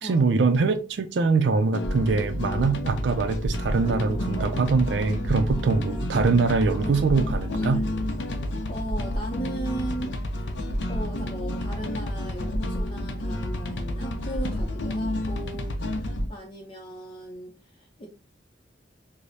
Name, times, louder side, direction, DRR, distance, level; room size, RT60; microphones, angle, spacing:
voice 1, 0.0-7.8, right 4 dB, 80° right, 0.4 m, -23 dB
sound 1, 1.7-16.3, left 1 dB, 85° left, 0.5 m, -30 dB
sound 2, 3.7-8.8, equal, 30° right, 1.0 m, -44 dB
voice 2, 8.7-18.1, right 1 dB, 30° left, 0.6 m, -37 dB
4.8 x 2.0 x 2.7 m
head